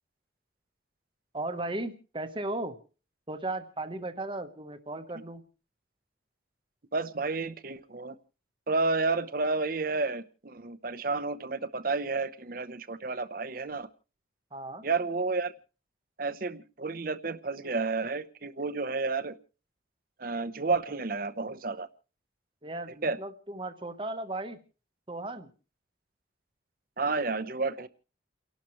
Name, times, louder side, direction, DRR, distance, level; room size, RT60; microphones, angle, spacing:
voice 1, 1.3-2.8 3.3-5.4 14.5-14.8 22.6-24.6 25.1-25.5, right 2 dB, 25° right, 8 dB, 1.1 m, -36 dB
voice 2, 6.9-8.2 8.7-13.9 14.8-15.5 16.2-19.4 20.2-21.9 23.0-23.2 27.0-27.9, right 3 dB, 50° right, 12 dB, 0.9 m, -31 dB
29.5 x 12.0 x 3.1 m, 0.37 s
head